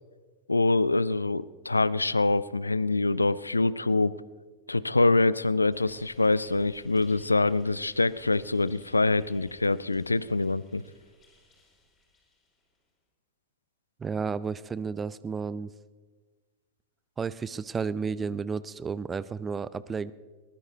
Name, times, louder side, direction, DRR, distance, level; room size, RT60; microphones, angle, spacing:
voice 1, 0.5-4.2 4.7-10.8, left 3 dB, 80° left, 19 dB, 0.4 m, -25 dB
sound 1, 5.7-12.8, equal, 25° left, 5.2 m, -58 dB
voice 2, 14.0-15.7 17.2-20.1, right 5 dB, 20° right, 18 dB, 0.5 m, -32 dB
22.0 x 19.5 x 2.7 m, 1.4 s
figure-of-eight pair, 90°, 0 cm